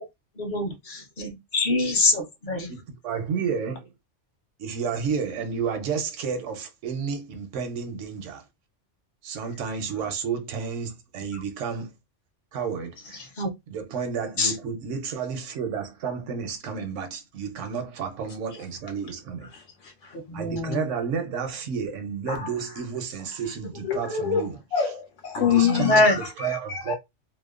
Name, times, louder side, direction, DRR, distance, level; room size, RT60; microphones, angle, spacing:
voice 1, 0.4-0.7 1.2-2.7 13.4-13.5 14.4-14.5 20.3-20.8 25.6-26.2, left 2 dB, 50° left, 0.8 m, -23 dB
voice 2, 2.7-3.9 4.6-8.4 9.2-11.9 12.5-13.2 13.7-19.5 20.3-24.6 25.4-26.9, right 6 dB, 80° right, 1.0 m, -31 dB
voice 3, 19.5-20.1 22.3-22.5 23.8-26.9, left 8 dB, 80° left, 1.1 m, -27 dB
2.8 x 2.0 x 2.3 m
omnidirectional pair, 1.2 m